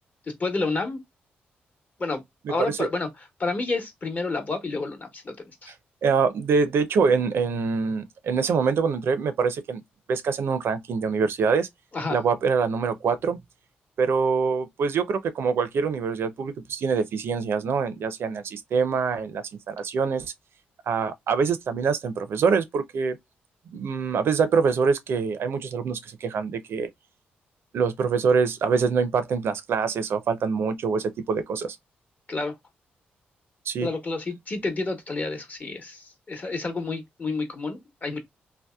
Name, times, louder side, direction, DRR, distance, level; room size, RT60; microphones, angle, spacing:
voice 1, 0.4-1.0 2.0-2.2 2.5-5.3 5.6-5.7 11.9-12.2 32.3-32.5 33.8-38.2, left 3 dB, 40° left, 0.9 m, -29 dB
voice 2, 6.0-9.8 10.1-11.7 12.1-13.4 14.0-20.3 20.9-23.2 23.7-26.9 27.7-31.8 33.7-33.9, right 5 dB, 70° right, 0.4 m, -24 dB
2.7 x 2.1 x 2.2 m
supercardioid pair, 60°, 4 cm